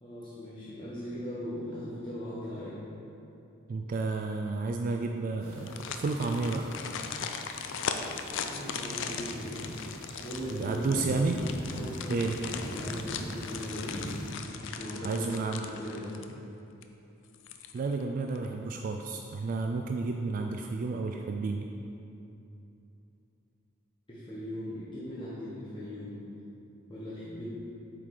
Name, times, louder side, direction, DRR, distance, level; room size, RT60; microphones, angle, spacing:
voice 1, 0.0-2.8 8.4-9.7 10.1-10.8 11.2-14.1 14.6-15.2 15.6-16.1 24.1-26.2 26.9-27.4, equal, 25° left, -10 dB, 1.0 m, -39 dB
voice 2, 3.7-6.7 10.5-11.4 12.1-12.4 15.0-15.6 17.7-21.6, right 3 dB, 45° right, 3 dB, 0.3 m, -31 dB
sound 1, 5.4-14.3, equal, 70° right, 1.4 m, -42 dB
sound 2, 5.5-16.5 16.8-16.9 17.3-18.0 18.3-18.5, left 6 dB, 65° left, 0.4 m, -39 dB
7.7 x 4.7 x 3.9 m, 2.8 s
head